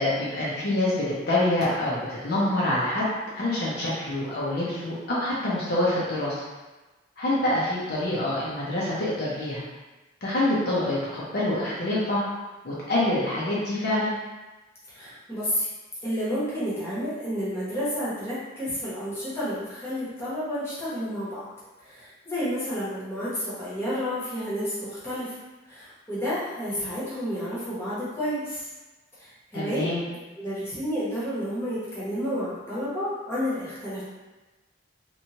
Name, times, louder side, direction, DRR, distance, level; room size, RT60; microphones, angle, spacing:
voice 1, 0.0-3.1 3.3-6.4 7.2-9.6 10.2-12.3 12.6-14.1 29.5-30.0, left 1 dB, 50° left, -7 dB, 0.6 m, -26 dB
voice 2, 14.9-15.7 16.0-21.5 21.8-25.4 25.7-28.7 29.2-29.9 30.4-34.0, equal, 15° left, -10 dB, 0.9 m, -30 dB
2.9 x 2.2 x 2.7 m, 1.2 s
head